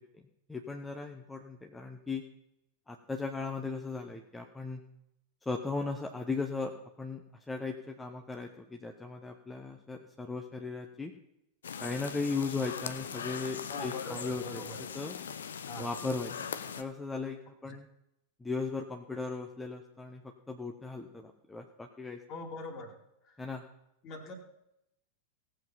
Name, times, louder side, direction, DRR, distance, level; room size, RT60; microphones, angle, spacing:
voice 1, 0.5-2.2 2.9-4.8 5.4-11.1 11.8-14.6 14.9-15.2 15.8-16.5 16.8-17.9 18.4-22.2 23.4-23.6, left 4 dB, 10° left, 3 dB, 1.1 m, -37 dB
sound 1, 11.6-16.8, left 7 dB, 65° left, 0.8 m, -40 dB
voice 2, 13.7-14.8 15.7-15.9 17.7-17.8 22.3-23.0 23.3-23.4 24.0-24.3, left 2 dB, 35° left, 5 dB, 2.6 m, -42 dB
17.5 x 7.7 x 5.8 m, 0.81 s
figure-of-eight pair, 90°, 0 cm